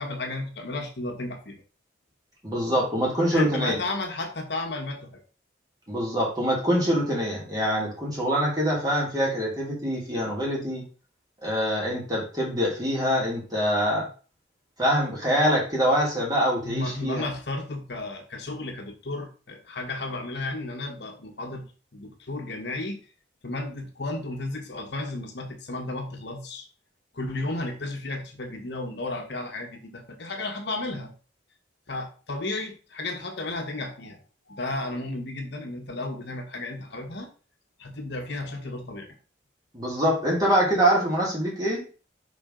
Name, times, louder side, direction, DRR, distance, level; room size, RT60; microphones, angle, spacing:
voice 1, 0.0-1.5 3.3-5.1 16.6-21.7 21.9-23.0 23.4-26.7 27.1-31.1 31.9-34.2 34.5-37.3 37.8-39.1, left 2 dB, 60° left, 3 dB, 1.2 m, -33 dB
voice 2, 2.4-3.8 5.9-10.8 11.4-14.1 14.8-17.3 39.7-41.8, equal, 20° right, -4 dB, 2.6 m, -24 dB
5.9 x 4.4 x 3.8 m, 0.36 s
head